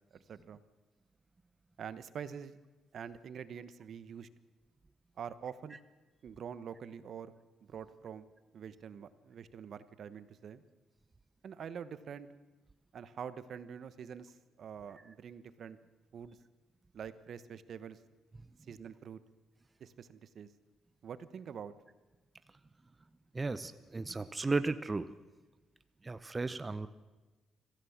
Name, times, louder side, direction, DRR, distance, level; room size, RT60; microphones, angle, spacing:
voice 1, 0.3-0.6 1.8-2.6 2.9-4.3 5.2-5.8 6.2-7.3 7.7-8.3 8.5-10.6 11.4-12.3 12.9-15.8 16.1-16.4 16.9-18.0 18.7-19.2 19.8-20.5 21.0-21.7, right 7 dB, 60° right, 13 dB, 1.1 m, -45 dB
voice 2, 23.3-25.1 26.0-26.9, right 3 dB, 25° right, 12 dB, 0.8 m, -34 dB
25.5 x 15.0 x 7.3 m, 1.2 s
cardioid pair, 90°, 0 cm